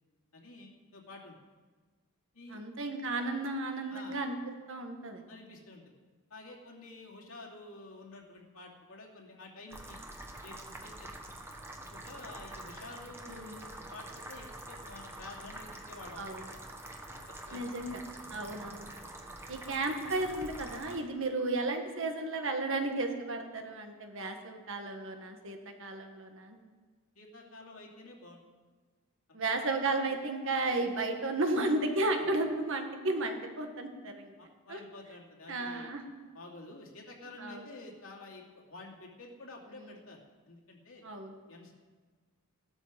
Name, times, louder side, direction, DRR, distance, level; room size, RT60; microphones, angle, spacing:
voice 1, 0.3-1.3 2.3-2.6 3.9-4.2 5.3-5.9 6.3-10.0 10.4-11.1 11.9-16.4 17.3-17.9 27.1-28.4 29.3-29.4 34.4-35.9 36.3-40.2 40.5-41.0 41.5-41.7, left 2 dB, 75° left, -1 dB, 2.8 m, -50 dB
voice 2, 2.5-4.4 4.7-5.2 13.3-13.5 16.2-16.5 17.5-18.0 18.3-18.9 19.5-26.6 29.3-34.4 34.7-34.8 35.5-36.0 37.4-37.6 39.8-39.9 41.0-41.4, right 2 dB, 60° right, 4 dB, 1.8 m, -33 dB
sound 1, 9.7-21.0, right 1 dB, 10° right, 1.3 m, -46 dB
16.5 x 12.5 x 5.3 m, 1.4 s
head